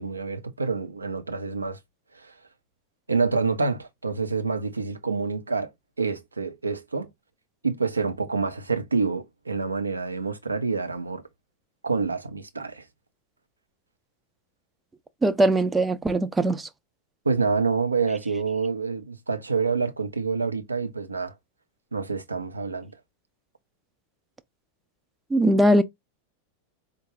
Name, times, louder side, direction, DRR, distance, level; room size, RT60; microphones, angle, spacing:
voice 1, 0.0-1.8 2.1-2.3 3.1-5.7 6.0-7.1 7.6-11.2 11.8-12.8 17.3-21.3 21.9-22.9, right 4 dB, 80° right, 0.6 m, -27 dB
voice 2, 15.2-16.7 25.3-25.8, right 1 dB, 10° right, 0.4 m, -20 dB
4.7 x 2.2 x 3.1 m
figure-of-eight pair, 90°, 0 cm